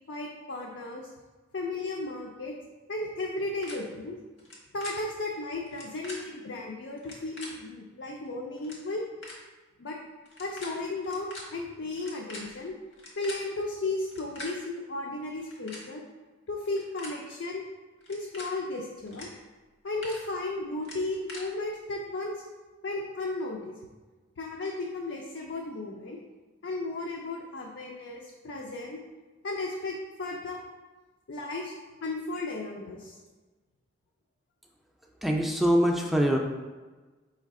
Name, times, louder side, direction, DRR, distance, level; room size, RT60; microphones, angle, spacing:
voice 1, 0.1-1.1 1.5-2.5 2.9-4.2 4.7-9.0 9.8-10.0 10.4-12.8 13.2-16.0 16.5-17.7 18.1-19.3 19.8-22.4 22.8-23.7 24.4-26.2 26.6-29.0 29.4-30.6 31.3-31.7 32.0-33.2, left 2 dB, 60° left, 0 dB, 0.4 m, -34 dB
sound 1, 3.6-3.7 4.4-4.5 4.8-4.9 5.7-6.2 7.0-7.5 8.3-8.4 8.6-8.8 9.2-9.4 10.2-10.7 11.0-11.4 12.0-13.4 14.0-14.5 15.3-15.8 16.6-17.1 18.0-18.5 19.1-19.3 19.6-20.2 20.8-21.4, left 2 dB, 85° left, 1.3 m, -43 dB
voice 2, 35.2-36.4, equal, ahead, 1 dB, 0.4 m, -23 dB
4.6 x 3.2 x 3.6 m, 1.3 s
head